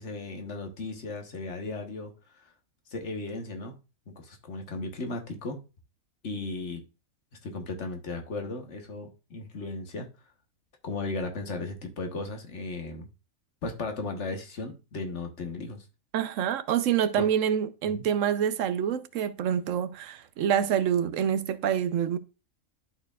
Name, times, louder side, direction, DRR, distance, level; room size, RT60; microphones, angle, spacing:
voice 1, 0.0-2.1 2.9-3.7 4.1-5.6 6.2-6.8 7.4-10.1 10.8-13.1 13.6-15.8 17.1-17.2 17.9-18.0, left 3 dB, 60° left, 1.5 m, -36 dB
voice 2, 16.1-22.2, right 9 dB, 75° right, 1.0 m, -26 dB
12.0 x 4.4 x 2.4 m
omnidirectional pair, 1.4 m